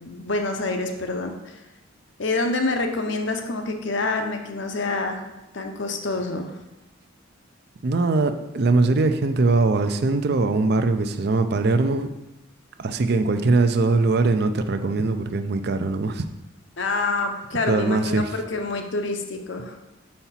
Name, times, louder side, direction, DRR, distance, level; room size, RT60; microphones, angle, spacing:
voice 1, 0.0-1.6 2.2-5.2 5.5-6.6 16.8-19.8, left 3 dB, 60° left, 5 dB, 0.8 m, -27 dB
voice 2, 7.8-12.1 12.8-16.2 17.7-18.3, right 3 dB, 50° right, 9 dB, 0.5 m, -21 dB
5.6 x 4.3 x 5.7 m, 0.97 s
head